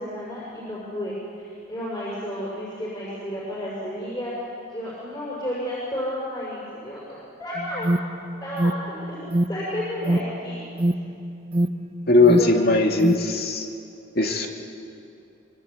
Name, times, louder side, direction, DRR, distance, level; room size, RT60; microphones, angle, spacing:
voice 1, 0.0-4.3 4.7-7.9 8.4-9.2 9.5-10.6 12.4-12.7, equal, 20° left, -7 dB, 6.1 m, -32 dB
Alarm, 7.6-13.4, right 1 dB, 25° right, 0.7 m, -25 dB
voice 2, 12.1-13.7 14.2-14.5, left 2 dB, 50° left, 3 dB, 2.5 m, -19 dB
24.0 x 23.5 x 8.6 m, 2.6 s
head